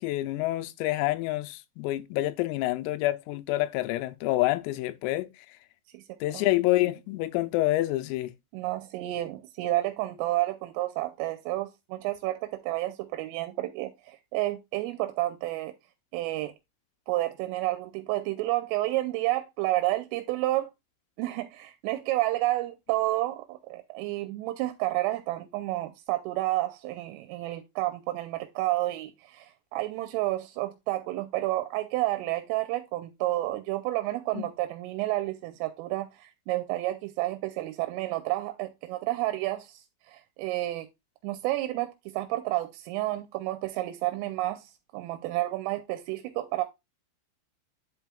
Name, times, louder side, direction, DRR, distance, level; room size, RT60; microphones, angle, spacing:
voice 1, 0.0-5.3 6.2-8.3 34.4-34.5, left 17 dB, 90° left, 3.3 m, -27 dB
voice 2, 8.5-15.7 16.1-16.5 17.1-20.7 21.2-39.8 40.1-40.9 41.2-46.6, right 17 dB, 85° right, 3.1 m, -30 dB
10.5 x 5.5 x 2.2 m
omnidirectional pair, 5.9 m